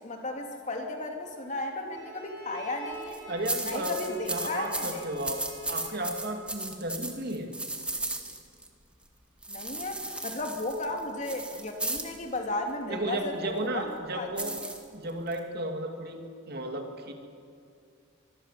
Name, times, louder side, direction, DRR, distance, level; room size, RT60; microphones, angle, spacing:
voice 1, 0.0-3.2 3.6-5.0 9.5-14.6, left 2 dB, 35° left, 3 dB, 2.9 m, -35 dB
Bowed string instrument, 1.9-6.5, left 1 dB, 20° left, 7.2 m, -46 dB
sound 1, 2.9-3.2 3.4-8.7 9.4-12.2 14.4-15.4, right 2 dB, 5° right, 1.9 m, -35 dB
voice 2, 3.3-4.0 4.3-5.4 5.7-7.5 12.9-14.5 14.9-17.1, right 1 dB, 50° right, 4 dB, 2.7 m, -34 dB
24.5 x 22.0 x 7.7 m, 2.4 s
head